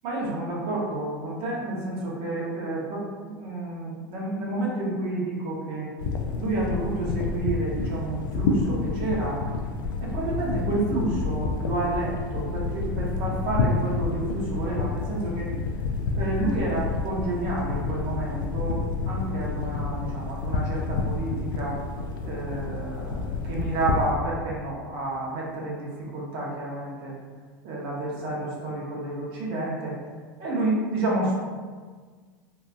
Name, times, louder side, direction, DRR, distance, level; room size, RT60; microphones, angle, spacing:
voice 1, 0.0-5.9 6.4-9.4 10.0-15.4 16.1-18.8 19.1-21.8 22.2-27.1 27.6-29.9 30.4-31.4, right 2 dB, 50° right, -4 dB, 0.9 m, -30 dB
sound 1, 6.0-24.1, left 4 dB, 75° left, 0.4 m, -29 dB
3.0 x 2.4 x 2.3 m, 1.5 s
hypercardioid pair, 90°, 11 cm